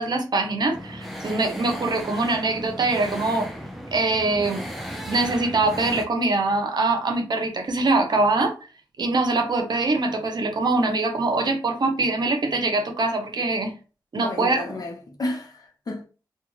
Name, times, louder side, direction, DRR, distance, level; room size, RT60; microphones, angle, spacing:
voice 1, 0.0-3.5 3.9-4.6 5.0-8.5 9.0-13.7 14.1-14.6, right 3 dB, 65° right, 0.7 m, -23 dB
sound 1, 0.7-6.1, equal, ahead, 0.6 m, -35 dB
voice 2, 14.2-16.0, left 2 dB, 50° left, 0.7 m, -31 dB
2.4 x 2.3 x 3.1 m
cardioid pair, 65°, 8 cm